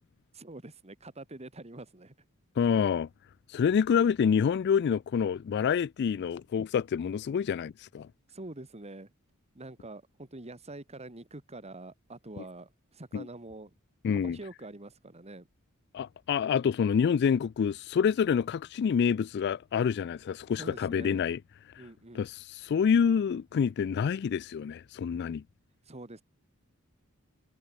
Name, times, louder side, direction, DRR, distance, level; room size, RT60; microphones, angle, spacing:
voice 1, 0.3-2.1 6.1-6.2 8.3-9.1 9.6-13.7 14.1-15.5 20.5-21.2 21.8-22.2 25.9-26.2, right 2 dB, 30° right, 1.8 m, -45 dB
voice 2, 2.6-3.1 3.5-8.1 13.1-13.3 14.0-14.4 15.9-21.4 22.1-25.4, left 7 dB, 50° left, 0.3 m, -27 dB
head